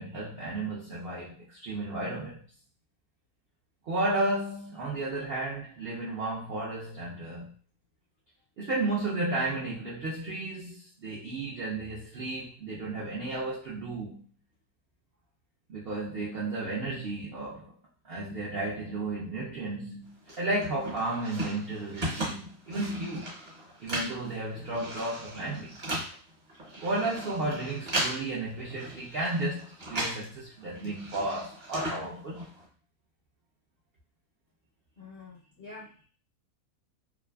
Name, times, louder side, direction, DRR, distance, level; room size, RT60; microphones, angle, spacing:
voice 1, 0.0-2.4 3.8-7.5 8.6-14.2 15.7-17.7 18.0-23.3 23.8-25.8 26.8-32.5, right 2 dB, 70° right, -5 dB, 0.5 m, -33 dB
sound 1, 20.3-30.3 30.6-32.6, right 1 dB, 40° right, 0.9 m, -37 dB
voice 2, 35.0-36.1, left 3 dB, 65° left, -5 dB, 0.6 m, -47 dB
2.6 x 2.4 x 2.2 m, 0.42 s
omnidirectional pair, 1.6 m